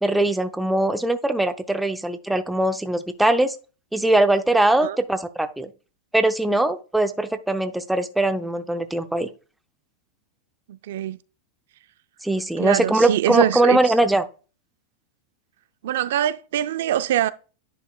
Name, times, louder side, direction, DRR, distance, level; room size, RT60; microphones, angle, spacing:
voice 1, 0.0-3.5 3.9-5.7 6.1-9.3 12.2-14.2, right 1 dB, 5° right, 0.6 m, -21 dB
voice 2, 10.7-11.2 12.6-13.9 15.8-17.3, right 12 dB, 75° right, 0.4 m, -24 dB
10.0 x 5.2 x 2.3 m
supercardioid pair, 135°, 0 cm